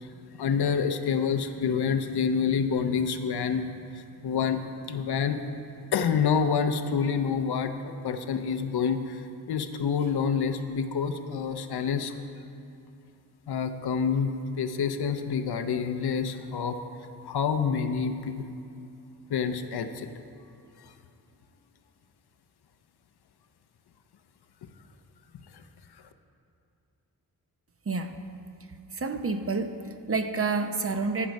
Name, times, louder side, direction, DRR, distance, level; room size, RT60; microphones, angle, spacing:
voice 1, 0.0-3.7 3.9-4.6 4.9-5.4 5.9-12.1 13.5-16.8 17.2-18.4 19.3-20.1 20.8-20.9, left 6 dB, 75° left, 8 dB, 0.7 m, -28 dB
voice 2, 27.9-28.2 28.9-31.3, right 4 dB, 35° right, 7 dB, 0.7 m, -29 dB
14.0 x 6.0 x 5.2 m, 2.6 s
cardioid pair, 70°, 39 cm